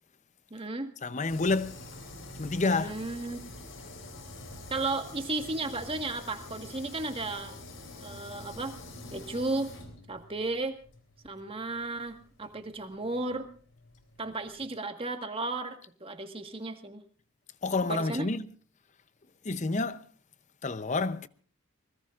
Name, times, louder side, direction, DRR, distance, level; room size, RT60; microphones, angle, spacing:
voice 1, 0.5-0.9 2.7-3.5 4.7-7.6 8.0-8.8 9.1-9.7 10.1-10.8 11.2-13.5 14.2-17.0 17.9-18.3, right 2 dB, 25° right, 1.6 m, -34 dB
voice 2, 1.0-1.9 2.4-2.9 17.6-18.5 19.4-20.1 20.6-21.3, left 3 dB, 35° left, 0.7 m, -29 dB
sound 1, 1.3-14.7, left 2 dB, 70° left, 3.6 m, -47 dB
24.0 x 20.5 x 2.5 m
head